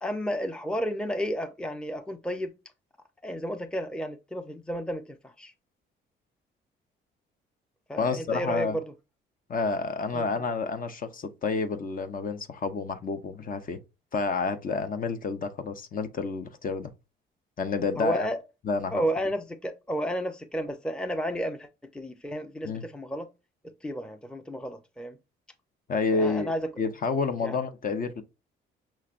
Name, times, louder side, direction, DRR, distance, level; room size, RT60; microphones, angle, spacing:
voice 1, 0.0-2.5 3.2-5.5 7.9-8.8 10.1-10.3 18.0-18.4 18.9-23.3 23.6-25.2 26.1-26.7 27.4-27.6, equal, 5° left, 0.6 m, -32 dB
voice 2, 8.0-8.8 9.5-13.8 14.1-16.9 17.6-18.3 18.6-19.0 22.6-22.8 25.9-26.5 26.8-28.2, left 4 dB, 45° left, 0.7 m, -29 dB
5.8 x 3.2 x 2.4 m
cardioid pair, 90°, 20 cm